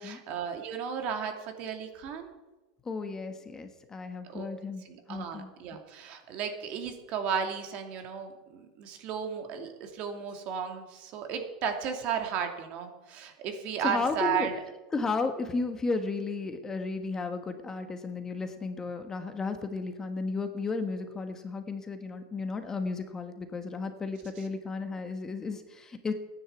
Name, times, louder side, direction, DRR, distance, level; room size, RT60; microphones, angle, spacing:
voice 1, 0.0-1.3 1.6-2.3 4.3-4.5 4.8-14.5, right 7 dB, 50° right, 5 dB, 2.6 m, -34 dB
voice 2, 2.8-5.5 13.8-14.5 14.9-26.1, left 4 dB, 20° left, 7 dB, 1.4 m, -34 dB
14.0 x 10.0 x 8.3 m, 1.1 s
supercardioid pair, 125°, 3 cm